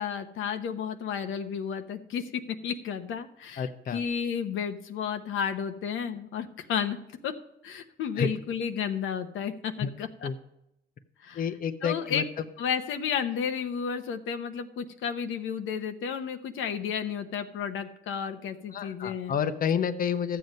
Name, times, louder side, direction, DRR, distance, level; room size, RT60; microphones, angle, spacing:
voice 1, 0.0-2.2 2.6-7.0 7.2-7.3 7.6-10.3 11.2-11.4 11.8-12.2 12.6-19.4, left 7 dB, 85° left, 7 dB, 0.9 m, -32 dB
voice 2, 3.6-4.0 8.2-8.3 9.8-9.9 10.2-10.3 11.3-12.2 18.7-20.4, left 7 dB, 45° left, 9 dB, 0.8 m, -29 dB
12.5 x 7.8 x 5.3 m, 0.81 s
cardioid pair, 90°, 20 cm